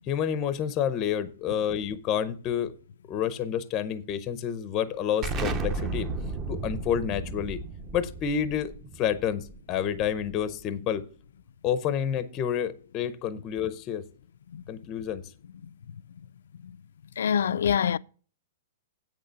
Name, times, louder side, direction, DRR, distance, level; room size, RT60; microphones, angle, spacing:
voice 1, 0.1-2.7 3.1-6.1 6.5-7.6 7.9-8.7 9.0-11.0 11.6-14.0 14.7-15.2, left 9 dB, 20° left, 0.6 m, -29 dB
Explosion, 5.2-10.6, right 3 dB, 20° right, 0.7 m, -34 dB
voice 2, 17.2-18.0, left 8 dB, 75° left, 0.4 m, -25 dB
8.3 x 6.5 x 6.8 m
hypercardioid pair, 175°, 0 cm